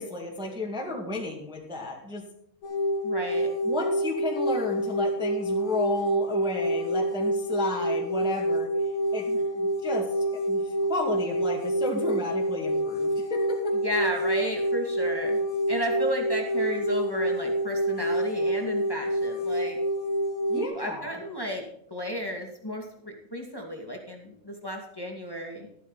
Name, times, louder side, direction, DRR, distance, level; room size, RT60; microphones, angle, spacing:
voice 1, 0.0-2.2 3.6-9.3 9.5-13.8 20.5-21.1, left 2 dB, 5° right, -1 dB, 0.6 m, -33 dB
sound 1, 2.6-20.7, right 1 dB, 60° left, 2.6 m, -27 dB
voice 2, 3.0-3.5 9.3-9.4 13.8-15.4 15.7-19.8 20.5-21.6 21.9-25.7, equal, 10° left, 1 dB, 1.1 m, -33 dB
13.0 x 12.0 x 4.1 m, 0.74 s
omnidirectional pair, 4.2 m